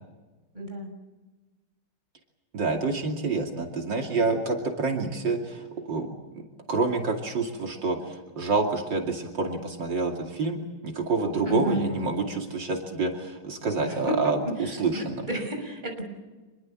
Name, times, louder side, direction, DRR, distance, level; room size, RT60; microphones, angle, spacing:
voice 1, 0.5-0.9 11.4-11.8 13.8-16.0, equal, 25° right, 4 dB, 6.2 m, -32 dB
voice 2, 2.5-15.2, right 3 dB, 80° right, 2 dB, 3.3 m, -28 dB
27.5 x 22.0 x 7.7 m, 1.2 s
omnidirectional pair, 1.9 m